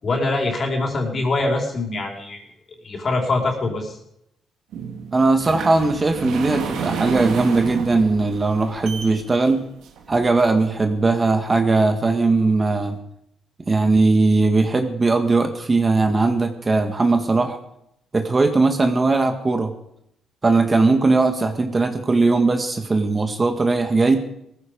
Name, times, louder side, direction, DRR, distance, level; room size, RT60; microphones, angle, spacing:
voice 1, 0.0-2.4 2.8-4.0, left 2 dB, 45° left, 1 dB, 4.9 m, -23 dB
sound 1, 4.7-10.9 11.4-11.5 12.1-12.2 12.5-12.6, right 6 dB, 80° right, 2.4 m, -31 dB
voice 2, 5.1-9.6 10.1-13.0 13.7-17.6 18.1-19.7 20.4-24.2, right 3 dB, 25° right, 6 dB, 1.8 m, -19 dB
18.0 x 15.0 x 5.3 m, 0.78 s
cardioid pair, 90°, 0 cm